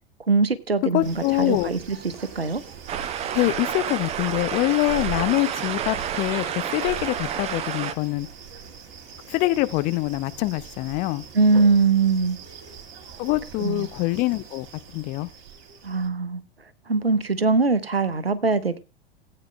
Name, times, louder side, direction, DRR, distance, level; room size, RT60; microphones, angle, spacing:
voice 1, 0.3-2.0 2.4-2.6 11.3-12.4 13.6-13.9 15.8-16.4 16.9-18.8, right 4 dB, 85° right, 0.9 m, -21 dB
voice 2, 0.9-1.7 3.3-6.4 6.7-8.3 9.3-11.2 13.2-14.7 14.9-15.3, left 19 dB, 30° left, 0.5 m, -24 dB
sound 1, 1.0-16.1, right 6 dB, 50° right, 1.9 m, -41 dB
sound 2, 2.9-7.9, right 9 dB, 20° right, 0.6 m, -30 dB
18.0 x 8.7 x 2.2 m
figure-of-eight pair, 90°, 29 cm